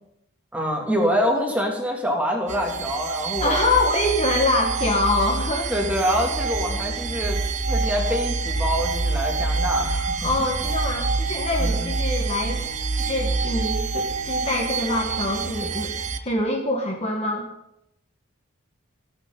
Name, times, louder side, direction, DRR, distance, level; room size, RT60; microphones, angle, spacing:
voice 1, 0.5-3.6 5.7-7.4 7.7-10.2 11.6-11.9, equal, 5° right, -1 dB, 2.8 m, -25 dB
sound 1, 2.5-16.2, right 3 dB, 35° right, 0.9 m, -26 dB
voice 2, 3.4-5.7 10.2-12.6 12.9-15.9 16.2-17.5, left 2 dB, 30° left, 1 dB, 1.6 m, -24 dB
26.5 x 9.0 x 4.1 m, 0.82 s
head